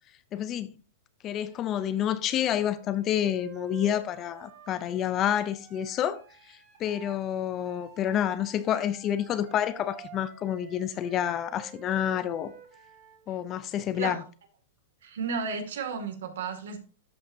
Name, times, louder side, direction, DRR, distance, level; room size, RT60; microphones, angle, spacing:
voice 1, 0.3-0.7 1.2-6.2 6.8-12.5 13.3-14.2, left 10 dB, 25° left, 0.5 m, -28 dB
Wind instrument woodwind instrument, 1.4-7.2 7.6-13.3, right 7 dB, 35° right, 1.5 m, -51 dB
voice 2, 15.0-16.8, right 5 dB, 75° right, 2.1 m, -33 dB
13.0 x 5.5 x 2.7 m
supercardioid pair, 165°, 0 cm